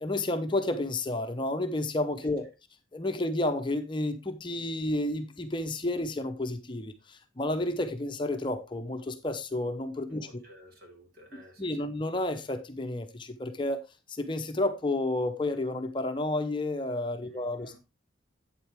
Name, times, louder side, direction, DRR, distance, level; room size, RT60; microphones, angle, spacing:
voice 1, 0.0-2.5 2.9-10.3 11.6-13.8 14.1-17.8, left 2 dB, 25° left, 0.8 m, -31 dB
voice 2, 10.1-11.9 17.2-17.8, equal, 50° right, 2.3 m, -54 dB
9.0 x 7.7 x 3.4 m
head